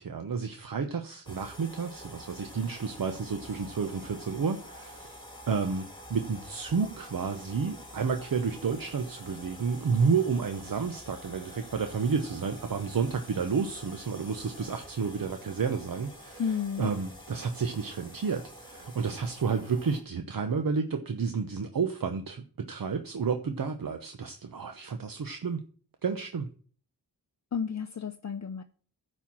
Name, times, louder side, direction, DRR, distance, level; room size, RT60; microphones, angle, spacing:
voice 1, 0.0-5.2 5.5-25.6 26.0-26.5, right 5 dB, 55° right, 1.0 m, -31 dB
sound 1, 1.2-20.0, equal, 10° left, 2.6 m, -47 dB
voice 2, 16.4-16.9 27.5-28.6, left 7 dB, 45° left, 0.6 m, -32 dB
10.5 x 4.5 x 7.3 m
wide cardioid pair, 85°, 40 cm